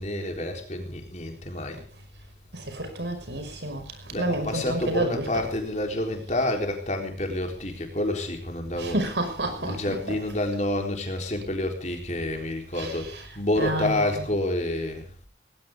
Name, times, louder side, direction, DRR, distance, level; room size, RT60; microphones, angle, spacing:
voice 1, 0.0-1.8 4.1-9.0 9.6-15.1, left 1 dB, 40° left, 3.8 m, -29 dB
voice 2, 2.5-3.8 4.2-5.3 8.8-10.2 12.7-13.2 13.6-14.2, right 1 dB, 85° right, 5.6 m, -30 dB
19.5 x 18.5 x 3.7 m
head